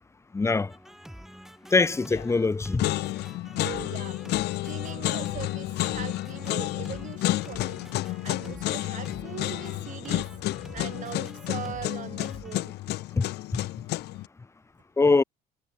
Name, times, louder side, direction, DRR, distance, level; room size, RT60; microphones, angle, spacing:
voice 1, 0.3-0.7 1.7-2.9 13.2-13.3 15.0-15.2, left 3 dB, 15° left, 0.7 m, -22 dB
sound 1, 0.7-12.6, equal, ahead, 3.5 m, -47 dB
sound 2, 2.1-2.4 2.8-14.3, left 17 dB, 80° left, 1.7 m, -31 dB
voice 2, 3.6-4.2 4.6-12.7, right 10 dB, 50° right, 1.1 m, -41 dB
cardioid pair, 110°, 17 cm